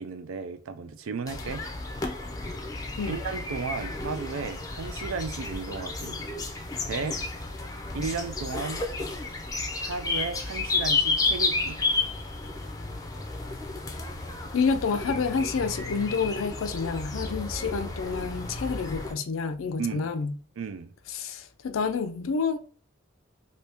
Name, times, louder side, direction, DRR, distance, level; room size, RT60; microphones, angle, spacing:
voice 1, 0.0-1.6 3.1-6.2 6.9-7.2 7.9-8.8 9.8-11.8 19.8-20.1 20.6-20.9, right 5 dB, 90° right, 0.4 m, -34 dB
sound 1, 1.3-19.1, left 3 dB, 20° left, 0.4 m, -32 dB
voice 2, 14.5-20.3 21.1-22.6, left 5 dB, 85° left, 0.4 m, -28 dB
2.8 x 2.7 x 3.4 m
head